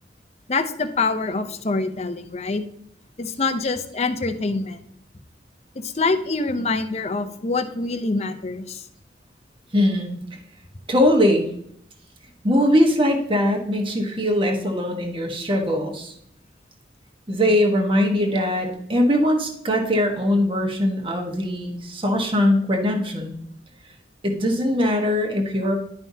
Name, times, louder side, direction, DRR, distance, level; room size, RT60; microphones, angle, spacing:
voice 1, 0.5-2.6 3.2-4.8 5.8-8.8, left 3 dB, 35° left, 8 dB, 0.6 m, -25 dB
voice 2, 9.7-10.4 10.9-11.5 12.4-16.1 17.3-23.3 24.2-25.7, left 1 dB, 30° right, 2 dB, 1.2 m, -21 dB
11.0 x 5.5 x 2.8 m, 0.70 s
head